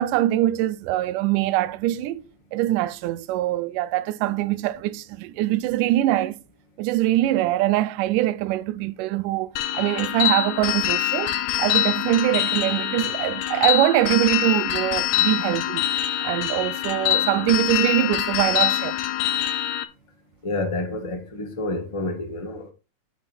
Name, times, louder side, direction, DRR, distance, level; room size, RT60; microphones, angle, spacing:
voice 1, 0.0-2.2 2.5-6.4 6.8-15.9 16.2-19.0, right 14 dB, 80° right, 2.1 m, -23 dB
sound 1, 9.6-19.8, left 12 dB, 75° left, 1.7 m, -24 dB
voice 2, 20.4-22.6, left 2 dB, 40° left, 0.4 m, -29 dB
9.0 x 5.9 x 4.3 m
omnidirectional pair, 3.8 m